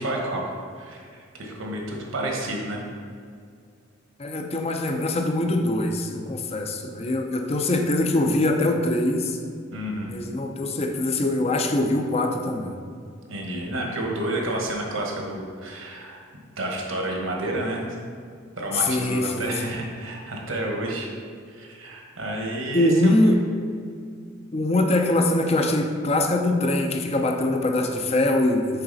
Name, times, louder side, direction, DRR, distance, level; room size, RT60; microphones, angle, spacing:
voice 1, 0.0-2.8 9.7-10.2 13.3-16.2 16.6-17.9 18.6-21.1 21.5-23.4, right 1 dB, 75° right, -1 dB, 1.2 m, -30 dB
voice 2, 4.2-9.4 10.1-12.8 18.7-19.7 22.7-23.4 24.5-28.8, left 1 dB, 30° left, 4 dB, 0.5 m, -23 dB
6.7 x 4.8 x 4.0 m, 2.2 s
head